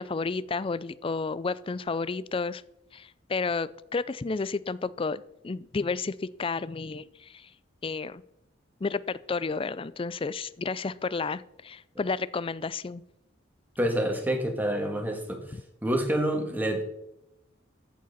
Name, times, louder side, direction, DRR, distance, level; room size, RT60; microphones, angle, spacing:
voice 1, 0.0-2.6 2.9-7.5 7.8-8.2 8.8-13.0, left 4 dB, 30° left, 18 dB, 0.4 m, -31 dB
voice 2, 13.8-15.6 15.8-16.8, right 1 dB, 10° right, 3 dB, 1.9 m, -27 dB
14.5 x 7.5 x 4.2 m, 0.82 s
head